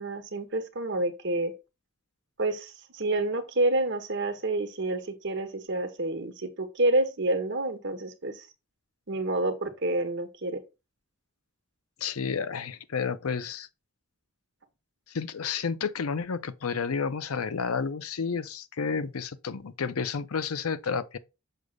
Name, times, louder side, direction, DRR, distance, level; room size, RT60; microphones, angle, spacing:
voice 1, 0.0-1.5 2.4-8.5 9.1-10.6, right 2 dB, 55° right, 1.1 m, -28 dB
voice 2, 12.0-13.7 15.1-21.2, left 5 dB, 90° left, 0.6 m, -31 dB
6.9 x 6.3 x 2.4 m
head